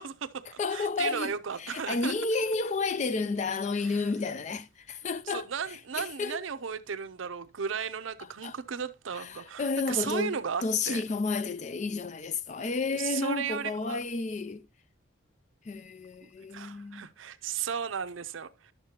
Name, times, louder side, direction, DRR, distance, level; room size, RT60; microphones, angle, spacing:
voice 1, 0.0-2.1 3.8-4.0 5.3-11.0 12.9-14.0 16.2-18.7, right 7 dB, 75° right, 0.6 m, -35 dB
voice 2, 0.6-1.3 1.6-5.5 6.0-6.4 8.4-8.6 9.2-14.7 15.7-17.1, left 4 dB, 35° left, 0.3 m, -31 dB
11.0 x 6.6 x 2.8 m
head